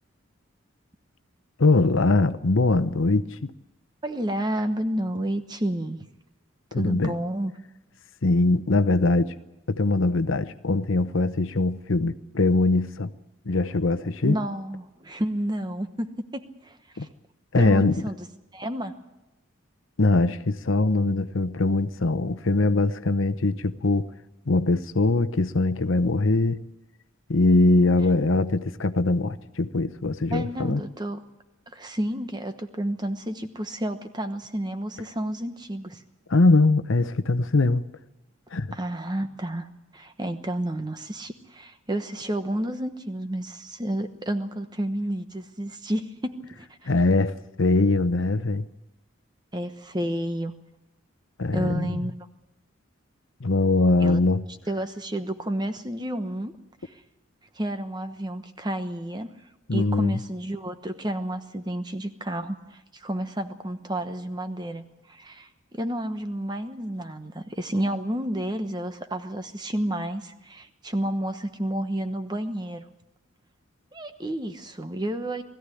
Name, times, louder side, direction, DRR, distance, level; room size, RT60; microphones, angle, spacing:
voice 1, 1.6-3.3 6.7-7.1 8.2-9.3 9.7-13.1 13.5-14.4 17.0-17.1 17.5-18.0 20.0-24.1 24.5-26.6 27.3-30.8 36.3-37.8 38.5-38.7 46.9-48.7 51.4-52.0 53.4-54.4 59.7-60.2, left 2 dB, 70° left, 0.8 m, -22 dB
voice 2, 4.0-6.0 6.7-7.5 14.2-17.1 17.5-18.3 18.5-18.9 30.3-31.2 31.7-36.0 38.7-39.7 39.9-46.9 49.5-50.5 51.5-52.1 54.0-54.2 54.7-56.5 56.8-56.9 57.5-59.3 59.7-72.8 73.9-75.4, right 1 dB, 20° right, 1.1 m, -30 dB
20.5 x 15.0 x 9.9 m
head